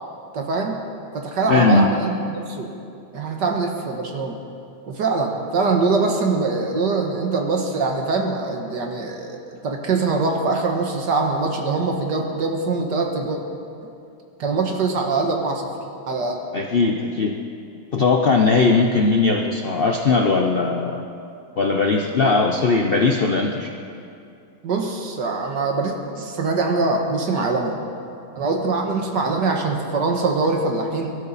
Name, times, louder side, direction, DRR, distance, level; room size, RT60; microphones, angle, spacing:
voice 1, 0.3-0.8 1.1-2.7 3.1-4.4 4.9-13.4 14.4-15.7 16.1-16.4 24.6-27.8 28.4-31.2, right 3 dB, 60° right, 2 dB, 1.9 m, -23 dB
voice 2, 1.5-1.9 16.5-17.3 17.9-21.0 21.6-23.7, left 4 dB, 85° left, 2 dB, 0.5 m, -19 dB
23.0 x 13.0 x 4.1 m, 2.6 s
omnidirectional pair, 2.1 m